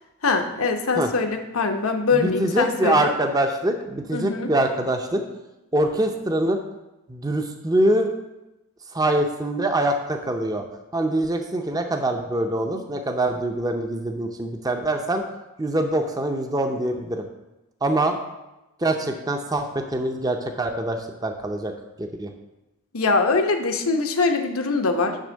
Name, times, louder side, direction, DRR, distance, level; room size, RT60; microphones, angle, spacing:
voice 1, 0.2-3.1 4.1-4.5 22.9-25.2, left 4 dB, 75° left, 5 dB, 0.9 m, -23 dB
voice 2, 2.1-5.2 5.7-6.6 7.1-8.1 8.9-10.6 10.9-15.2 15.6-17.2 17.8-18.2 18.8-21.7 22.0-22.3, right 1 dB, 15° right, 5 dB, 0.6 m, -24 dB
10.0 x 3.6 x 6.3 m, 0.98 s
head